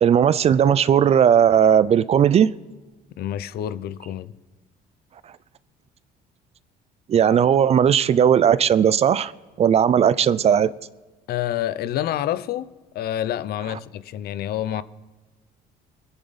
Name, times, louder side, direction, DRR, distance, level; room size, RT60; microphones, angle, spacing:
voice 1, 0.0-2.5 7.1-9.3 9.6-10.7, right 8 dB, 40° right, 0.4 m, -17 dB
voice 2, 3.2-4.3 11.3-14.8, left 11 dB, 65° left, 0.6 m, -28 dB
21.5 x 9.7 x 4.1 m
cardioid pair, 110°, 17 cm